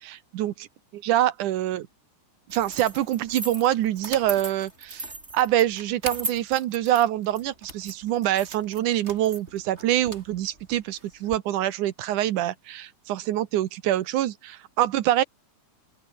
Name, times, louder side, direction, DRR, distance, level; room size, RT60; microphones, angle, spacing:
voice 1, 0.0-0.5 1.0-1.9 2.5-5.1 5.3-15.2, right 13 dB, 80° right, 2.6 m, -25 dB
sound 1, 2.5-11.4, right 2 dB, 20° right, 4.7 m, -38 dB
open air
omnidirectional pair, 3.6 m